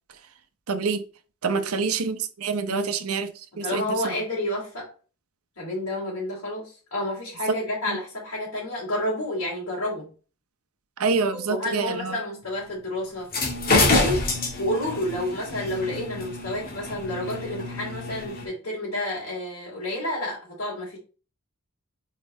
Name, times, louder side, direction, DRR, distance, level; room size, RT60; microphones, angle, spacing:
voice 1, 0.7-1.0 1.4-4.2 7.9-8.0 11.0-12.2, right 5 dB, 90° right, 0.8 m, -27 dB
voice 2, 1.5-1.8 2.7-2.9 3.6-4.9 5.6-10.1 11.3-14.3 14.6-21.0, left 1 dB, 85° left, 2.6 m, -30 dB
sound 1, 13.2-18.5, left 2 dB, 45° left, 1.8 m, -27 dB
5.5 x 4.6 x 4.1 m
head